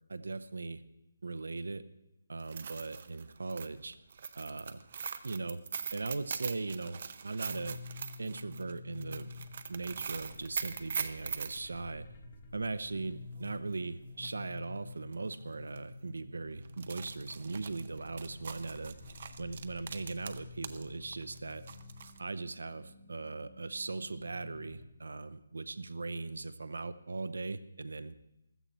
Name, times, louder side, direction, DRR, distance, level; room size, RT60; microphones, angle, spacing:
voice 1, 0.1-0.8 1.2-1.8 2.3-4.0 4.4-4.8 5.2-5.6 5.9-7.8 8.2-9.3 9.7-12.1 12.5-19.0 19.4-21.6 22.2-28.1, right 3 dB, 90° right, 13 dB, 0.8 m, -39 dB
sound 1, 2.4-11.6 13.7-13.8 14.2-14.3 15.1-15.3 15.6-15.8 16.6-20.8 21.1-22.2, right 6 dB, 35° right, 0.6 m, -41 dB
sound 2, 7.4-22.2 22.6-24.8, left 4 dB, 20° left, 1.3 m, -51 dB
sound 3, 13.4-24.7, left 1 dB, 60° left, 2.7 m, -54 dB
15.5 x 13.0 x 4.3 m, 0.89 s
hypercardioid pair, 180°, 0 cm